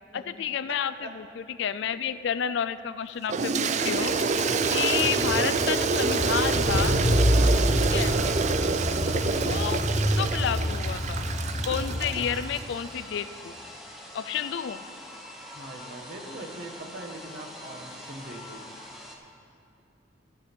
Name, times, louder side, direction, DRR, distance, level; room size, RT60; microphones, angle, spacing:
voice 1, 0.1-4.1 4.7-7.0 7.9-8.1 9.2-9.8 10.2-11.2 11.7-13.6 14.1-14.8, left 8 dB, 65° left, 13 dB, 0.3 m, -30 dB
Toilet flush, 3.3-12.6, right 4 dB, 40° right, 0.4 m, -27 dB
sound 1, 3.6-19.2, equal, ahead, 1.0 m, -44 dB
Car / Engine, 4.2-12.5, equal, 35° left, 0.9 m, -27 dB
voice 2, 4.6-5.0 7.6-7.9 15.5-18.6, right 2 dB, 55° right, 3 dB, 1.1 m, -41 dB
16.0 x 6.0 x 4.4 m, 2.4 s
head